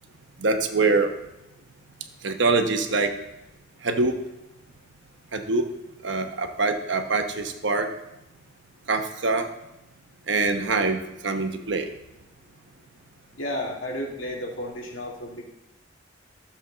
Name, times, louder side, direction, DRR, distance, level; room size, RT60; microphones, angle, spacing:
voice 1, 0.4-1.1 2.2-3.1 3.8-4.2 5.3-5.7 6.0-7.9 8.9-9.5 10.3-11.9, right 3 dB, 70° right, 6 dB, 1.0 m, -24 dB
voice 2, 13.4-15.4, left 1 dB, 90° left, -2 dB, 2.3 m, -32 dB
13.0 x 7.1 x 3.9 m, 0.93 s
head